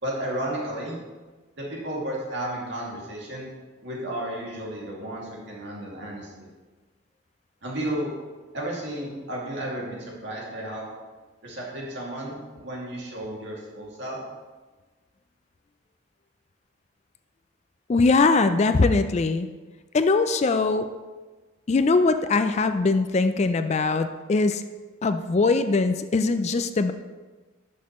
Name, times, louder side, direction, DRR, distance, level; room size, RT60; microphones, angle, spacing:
voice 1, 0.0-1.0 1.6-3.5 3.8-6.5 7.6-8.1 8.5-10.9 11.4-14.2, right 1 dB, 60° right, -3 dB, 2.3 m, -33 dB
voice 2, 17.9-19.5 19.9-20.9 21.7-24.6 25.0-26.9, left 3 dB, 35° left, 9 dB, 0.3 m, -21 dB
11.5 x 6.4 x 3.0 m, 1.3 s
head